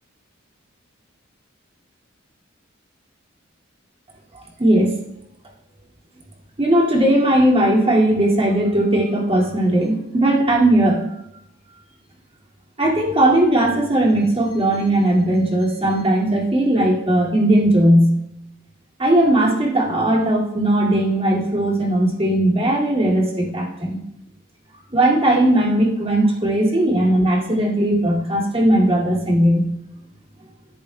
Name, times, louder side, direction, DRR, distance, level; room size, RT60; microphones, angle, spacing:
voice 1, 4.6-5.0 6.6-11.1 12.8-18.2 19.0-24.0 24.9-29.7, right 1 dB, 30° right, -3 dB, 2.2 m, -18 dB
13.5 x 10.5 x 2.2 m, 0.81 s
head